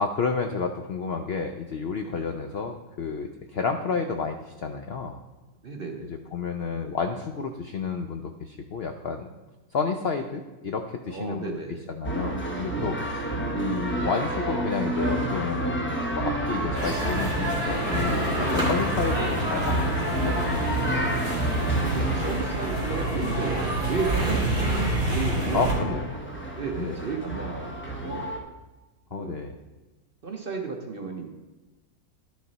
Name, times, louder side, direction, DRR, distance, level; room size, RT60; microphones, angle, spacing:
voice 1, 0.0-5.2 6.3-9.3 9.7-11.6 12.0-13.3 13.5-20.9 25.5-26.1 26.8-26.9 29.1-29.6, left 5 dB, 75° left, 6 dB, 0.5 m, -30 dB
voice 2, 5.6-6.1 11.1-11.8 12.9-13.1 21.7-24.7 25.0-26.0 26.6-28.3 29.1-29.4 30.2-31.3, right 4 dB, 50° right, 3 dB, 0.7 m, -33 dB
sound 1, 12.0-28.4, right 1 dB, 10° left, 0.7 m, -29 dB
sound 2, 16.7-25.7, right 2 dB, 30° right, 2.5 m, -28 dB
11.5 x 6.2 x 4.0 m, 1.2 s
omnidirectional pair, 1.8 m